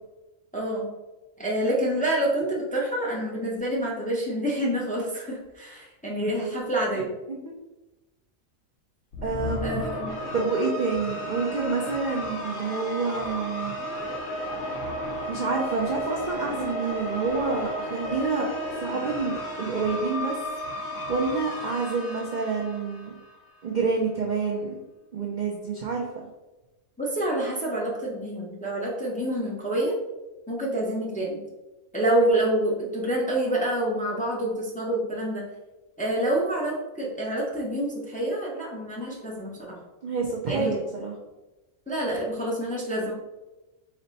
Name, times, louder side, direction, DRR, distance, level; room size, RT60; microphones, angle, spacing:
voice 1, 0.5-0.9 1.4-7.1 9.6-10.1 27.0-30.0 30.5-31.4 31.9-35.4 36.0-39.8 40.5-40.7 41.9-43.1, right 1 dB, 10° left, -4 dB, 0.5 m, -27 dB
sound 1, 9.1-23.5, equal, 60° left, 0.9 m, -33 dB
voice 2, 9.2-9.8 10.3-13.7 15.3-18.5 18.8-20.4 21.1-23.1 23.6-24.8 25.1-26.1 40.0-41.2, right 4 dB, 75° right, -1 dB, 0.4 m, -28 dB
4.2 x 2.1 x 4.0 m, 1.0 s
omnidirectional pair, 1.4 m